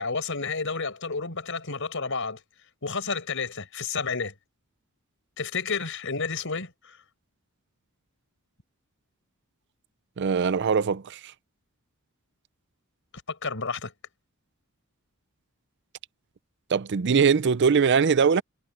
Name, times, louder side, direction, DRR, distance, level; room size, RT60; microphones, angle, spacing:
voice 1, 0.0-2.4 2.8-4.3 5.4-7.0 13.3-13.9, left 4 dB, 65° left, 5.6 m, -31 dB
voice 2, 10.2-11.2 16.7-18.4, right 6 dB, 55° right, 0.5 m, -21 dB
head